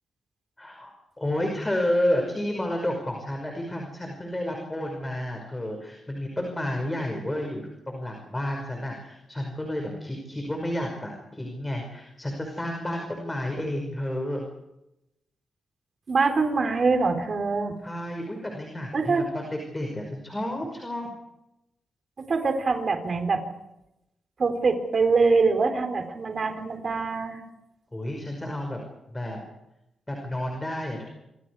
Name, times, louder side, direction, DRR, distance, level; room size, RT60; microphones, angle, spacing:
voice 1, 0.6-14.4 17.8-21.1 27.9-28.8 29.1-29.4 30.1-31.1, left 1 dB, 15° left, 2 dB, 5.6 m, -31 dB
voice 2, 16.1-17.8 18.9-19.3 22.3-23.4 24.4-27.4, right 4 dB, 40° right, 6 dB, 3.9 m, -24 dB
27.5 x 26.5 x 4.9 m, 0.88 s
wide cardioid pair, 140°, 0 cm